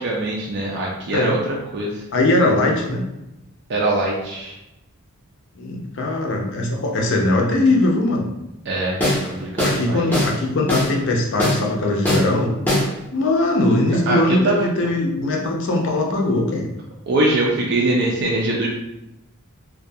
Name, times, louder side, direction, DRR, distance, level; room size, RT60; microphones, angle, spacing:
voice 1, 0.0-2.0 3.7-4.6 8.7-9.0 9.3-10.0 14.1-14.7 17.1-18.7, right 2 dB, 50° right, -3 dB, 0.4 m, -22 dB
voice 2, 2.1-3.0 5.6-8.3 9.6-12.5 13.1-16.7, left 2 dB, 55° left, 0 dB, 0.5 m, -20 dB
sound 1, 9.0-9.3 9.6-9.8 10.1-10.3 10.7-10.9 11.4-11.6 12.0-12.3 12.7-12.9, left 1 dB, 10° left, 0.5 m, -20 dB
2.3 x 2.2 x 2.6 m, 0.91 s
head